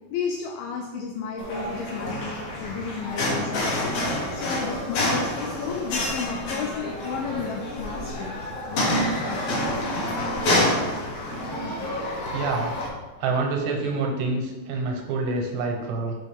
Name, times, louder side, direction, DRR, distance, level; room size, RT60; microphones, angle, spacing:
voice 1, 0.1-3.9 4.3-8.4 8.7-10.0, left 6 dB, 90° left, 2 dB, 2.0 m, -33 dB
sound 1, 1.4-12.9, left 1 dB, 65° left, 1.6 m, -28 dB
voice 2, 12.3-12.7 13.2-16.2, right 3 dB, 85° right, 2 dB, 3.2 m, -27 dB
6.8 x 5.3 x 3.5 m, 1.2 s
omnidirectional pair, 4.8 m